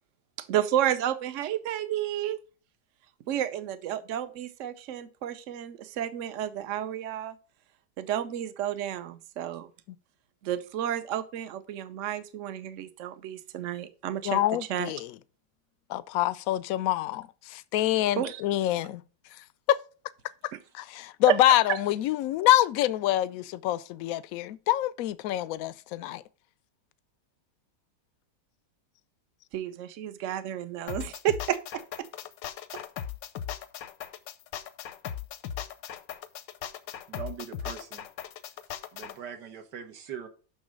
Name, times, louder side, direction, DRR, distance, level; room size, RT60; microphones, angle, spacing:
voice 1, 0.4-2.4 3.3-7.3 8.0-9.7 10.4-14.4 14.7-14.9 18.2-18.4 20.5-20.6 21.3-21.8 29.5-32.1, right 11 dB, 55° right, 1.0 m, -31 dB
voice 2, 14.2-15.1 15.9-19.0 19.7-19.8 20.7-26.2, left 14 dB, 70° left, 0.8 m, -26 dB
sound 1, 30.9-39.2, left 10 dB, 85° left, 1.4 m, -38 dB
voice 3, 37.1-38.1 38.9-40.3, right 8 dB, 70° right, 1.8 m, -41 dB
6.3 x 6.1 x 5.1 m
omnidirectional pair, 1.9 m